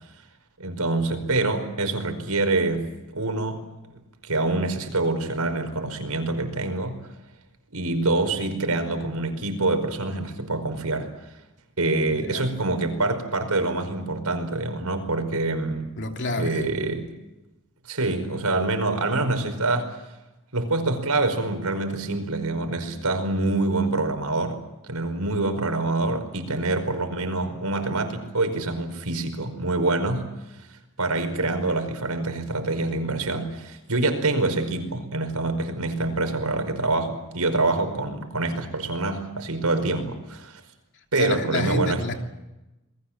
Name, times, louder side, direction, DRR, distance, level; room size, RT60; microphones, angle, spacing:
voice 1, 0.6-2.9 3.1-3.6 4.2-7.1 7.7-11.1 11.8-15.9 16.4-17.1 17.9-20.0 20.5-30.3 31.0-40.6 41.1-42.0, right 2 dB, 90° right, 7 dB, 5.1 m, -26 dB
voice 2, 12.1-12.5 16.0-16.7 40.9-42.1, left 2 dB, 55° left, 4 dB, 3.0 m, -29 dB
28.5 x 21.5 x 7.5 m, 0.99 s
head